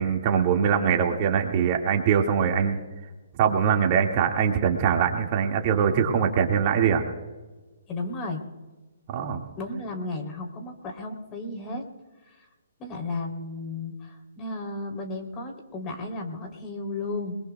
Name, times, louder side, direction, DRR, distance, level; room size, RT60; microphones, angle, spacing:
voice 1, 0.0-2.8 3.4-7.0 9.1-9.4, right 7 dB, 40° right, 2 dB, 2.1 m, -22 dB
voice 2, 7.9-8.4 9.6-11.8 12.2-12.5 12.8-17.4, left 2 dB, 25° left, 2 dB, 3.3 m, -34 dB
29.0 x 21.0 x 2.4 m, 1.3 s
hypercardioid pair, 135°, 0 cm